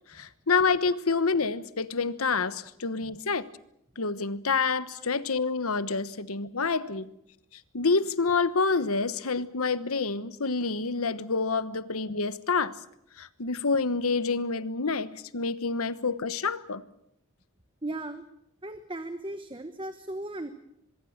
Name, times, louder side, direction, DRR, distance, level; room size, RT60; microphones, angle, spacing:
voice 1, 0.1-3.5 4.0-7.1 7.7-12.7 13.2-16.8, left 4 dB, 80° left, 14 dB, 1.2 m, -28 dB
voice 2, 17.8-18.2 18.6-20.5, right 1 dB, 20° right, 9 dB, 1.1 m, -37 dB
24.5 x 22.0 x 7.3 m, 0.77 s
head